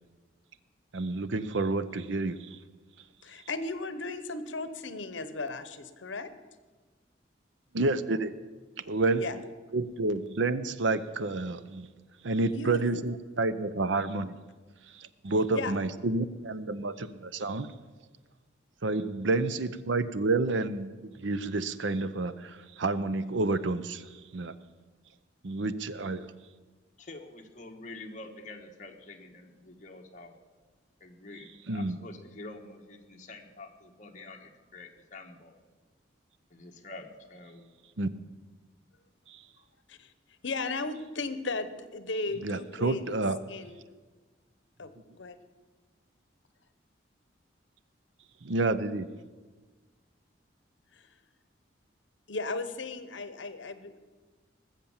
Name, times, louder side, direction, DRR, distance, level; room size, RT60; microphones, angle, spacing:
voice 1, 0.9-2.6 7.7-8.3 8.8-9.3 9.7-11.9 12.2-14.4 14.8-17.8 18.8-24.5 25.4-26.3 31.7-32.0 38.0-38.1 39.3-39.5 42.4-43.4 48.4-49.1, right 3 dB, 80° right, 14 dB, 0.7 m, -29 dB
voice 2, 3.2-6.3 9.2-9.3 12.5-12.9 15.5-15.7 39.9-40.1 40.4-43.2 43.5-43.8 44.8-45.4 50.9-51.1 52.3-54.0, left 3 dB, 80° left, 12 dB, 0.9 m, -36 dB
voice 3, 27.0-30.3 31.0-35.5 36.5-37.7, left 2 dB, 40° left, 3 dB, 1.4 m, -47 dB
19.5 x 7.4 x 7.2 m, 1.4 s
head